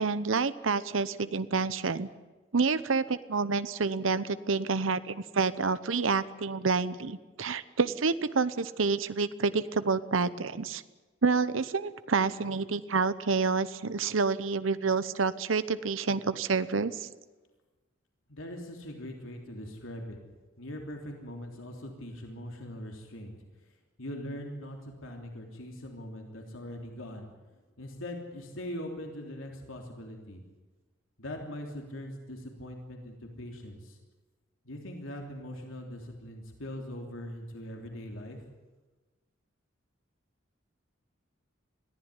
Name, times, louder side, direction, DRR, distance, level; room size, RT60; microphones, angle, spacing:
voice 1, 0.0-2.1 2.5-10.8 11.2-17.1, right 4 dB, 75° right, 14 dB, 0.8 m, -28 dB
voice 2, 18.3-20.2 20.6-23.3 24.0-27.3 27.8-30.4 31.2-34.0 34.6-38.4, left 1 dB, 80° left, 2 dB, 3.3 m, -41 dB
21.5 x 15.0 x 9.8 m, 1.2 s
head